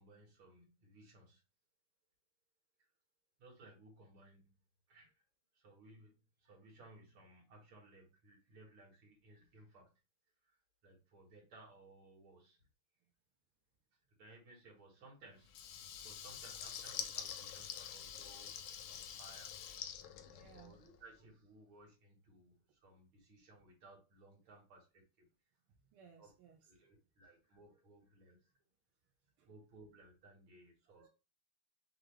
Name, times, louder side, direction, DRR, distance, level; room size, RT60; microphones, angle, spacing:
voice 1, 0.0-1.4 2.8-2.9 3.4-4.6 4.9-5.2 5.5-9.9 10.4-12.6 14.2-15.5 16.0-18.5 18.9-19.5 20.5-25.3 26.2-26.3 26.7-28.5 29.5-31.0, right 2 dB, 70° right, -1 dB, 2.3 m, -61 dB
Water tap faucet / Liquid, 15.5-21.0, left 9 dB, 75° left, 1.1 m, -46 dB
voice 2, 20.3-20.7 25.9-26.9 29.4-29.5 30.9-31.1, right 6 dB, 90° right, 0 dB, 1.7 m, -62 dB
5.9 x 2.5 x 3.2 m, 0.30 s
omnidirectional pair, 2.3 m